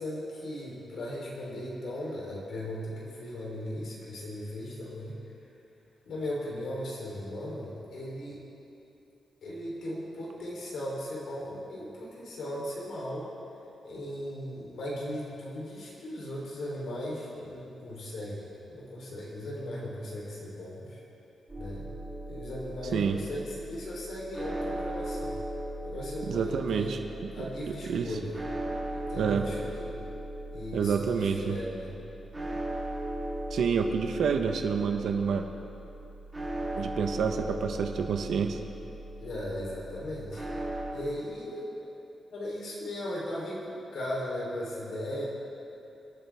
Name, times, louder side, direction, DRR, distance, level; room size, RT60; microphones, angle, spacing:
voice 1, 0.0-5.2 6.1-8.4 9.4-13.3 13.8-21.0 21.6-21.9 22.3-25.4 25.8-27.0 27.3-28.4 28.9-30.0 30.5-32.0 39.2-40.4 40.9-41.7 42.3-45.3, left 1 dB, 70° left, -4 dB, 3.5 m, -37 dB
sound 1, 21.5-40.9, right 1 dB, 15° right, 3.1 m, -38 dB
voice 2, 26.3-27.3 27.9-28.1 29.2-29.5 30.7-31.6 33.5-35.5 36.8-38.6, right 6 dB, 70° right, 5 dB, 1.0 m, -28 dB
26.0 x 9.2 x 3.5 m, 2.8 s
wide cardioid pair, 175°, 0 cm